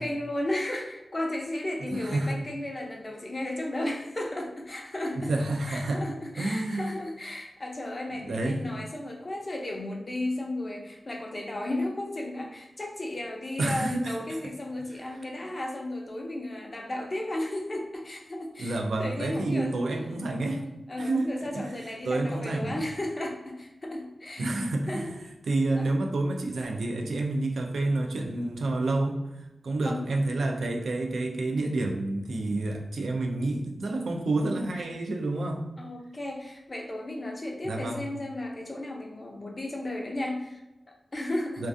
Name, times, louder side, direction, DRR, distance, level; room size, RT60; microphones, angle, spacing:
voice 1, 0.0-19.8 20.4-24.5 24.9-25.1 25.8-26.0 29.8-30.1 35.8-41.7, left 1 dB, 35° left, 1 dB, 0.4 m, -34 dB
voice 2, 2.0-2.4 5.2-6.0 6.4-6.9 8.1-8.6 13.6-14.2 18.6-20.6 21.0-21.3 21.5-21.7 22.0-22.8 24.4-25.1 25.5-29.2 29.6-35.6 37.6-38.0 41.6-41.7, right 2 dB, 85° right, 3 dB, 0.3 m, -29 dB
2.4 x 2.2 x 2.4 m, 0.97 s
wide cardioid pair, 75°, 0 cm